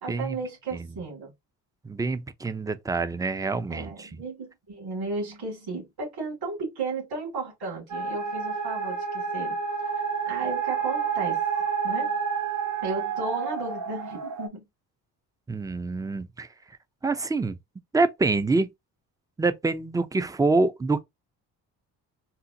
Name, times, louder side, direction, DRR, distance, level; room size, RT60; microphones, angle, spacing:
voice 1, 0.0-1.3 3.7-9.6 10.3-11.4 11.8-12.1 12.8-14.6, right 3 dB, 60° right, 2.2 m, -34 dB
voice 2, 1.8-4.2 15.5-16.5 17.0-17.6 17.9-18.7 19.4-21.0, right 3 dB, 10° right, 0.3 m, -26 dB
sound 1, 7.9-14.5, right 6 dB, 45° right, 0.8 m, -29 dB
4.0 x 2.0 x 2.6 m
supercardioid pair, 65°, 41 cm